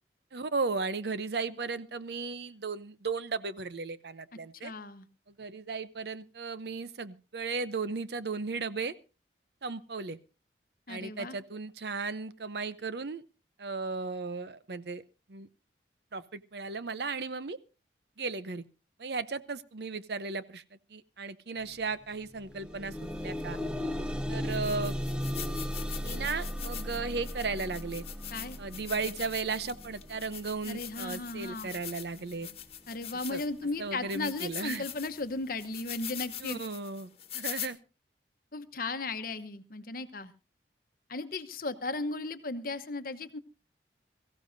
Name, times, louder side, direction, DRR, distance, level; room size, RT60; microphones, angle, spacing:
voice 1, 0.3-4.7 5.4-8.9 9.6-10.2 10.9-13.2 13.6-15.0 15.3-15.5 16.1-17.6 18.2-18.6 19.0-20.6 20.9-22.9 23.2-23.6 24.3-24.9 26.0-28.0 28.6-32.5 33.3-33.4 33.8-34.8 36.4-37.8, right 4 dB, 65° right, 14 dB, 0.7 m, -35 dB
voice 2, 4.6-5.1 10.9-11.4 28.3-28.6 30.7-31.7 32.9-36.6 38.5-40.3 41.1-43.4, left 3 dB, 50° left, 10 dB, 1.0 m, -36 dB
sound 1, 21.6-21.8 22.1-33.2 33.9-34.0 34.5-34.6, equal, 5° right, 0.6 m, -37 dB
sound 2, 23.4-23.5 24.1-24.2 24.5-33.6 34.1-37.7, left 10 dB, 35° left, 1.5 m, -43 dB
23.0 x 15.0 x 2.6 m, 0.31 s
head